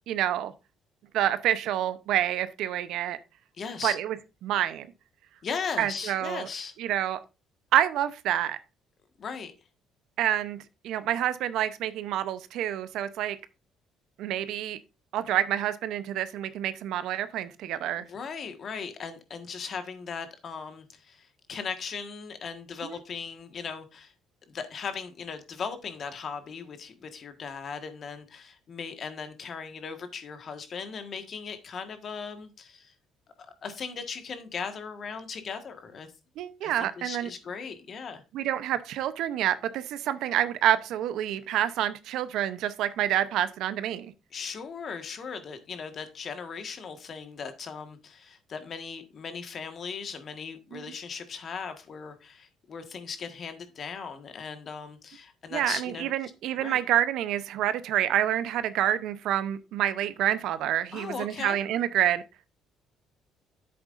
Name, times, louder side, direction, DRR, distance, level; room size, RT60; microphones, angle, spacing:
voice 1, 0.1-0.5 1.1-3.2 3.8-4.2 4.4-4.9 5.8-6.5 6.8-7.2 7.7-8.6 10.2-13.4 14.2-14.8 15.1-18.1 22.8-23.0 36.4-37.3 38.3-44.1 50.7-50.8 55.5-62.2, right 11 dB, 75° right, 0.7 m, -28 dB
voice 2, 3.6-3.9 5.4-6.7 9.2-9.5 17.9-24.1 24.5-32.9 33.6-36.1 36.6-38.2 44.3-56.1 56.6-56.8 60.9-61.6, left 5 dB, 50° left, 1.5 m, -38 dB
10.5 x 7.8 x 2.5 m
cardioid pair, 85°, 0 cm